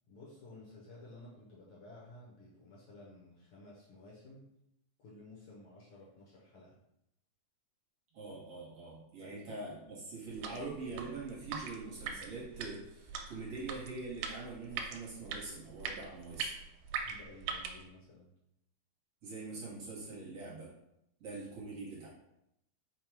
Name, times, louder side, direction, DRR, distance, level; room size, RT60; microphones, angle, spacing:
voice 1, 0.1-4.5 5.0-6.8 9.2-9.4 17.0-18.3, left 2 dB, 65° left, -5 dB, 1.6 m, -54 dB
voice 2, 8.1-16.6 19.2-20.7 21.2-22.1, right 3 dB, 60° right, -5 dB, 1.9 m, -44 dB
sound 1, 10.3-17.9, right 6 dB, 85° right, 2.0 m, -42 dB
5.2 x 2.3 x 4.5 m, 0.81 s
omnidirectional pair, 3.5 m